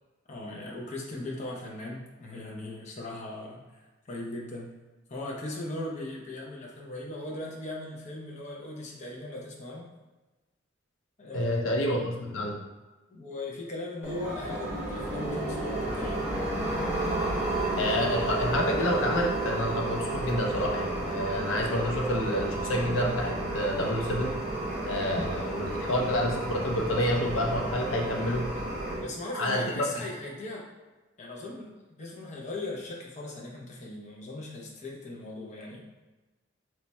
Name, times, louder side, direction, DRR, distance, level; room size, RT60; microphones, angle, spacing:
voice 1, 0.3-3.8 4.1-4.7 5.1-9.9 11.2-11.8 13.1-16.2 29.0-30.7 31.2-35.8, left 2 dB, 35° left, -2 dB, 0.6 m, -39 dB
voice 2, 11.3-12.6 17.7-24.4 24.9-28.4 29.3-29.9, left 1 dB, 90° left, 0 dB, 0.5 m, -28 dB
sound 1, 14.0-29.0, right 2 dB, 10° right, 0.9 m, -32 dB
3.1 x 2.2 x 4.1 m, 1.2 s
head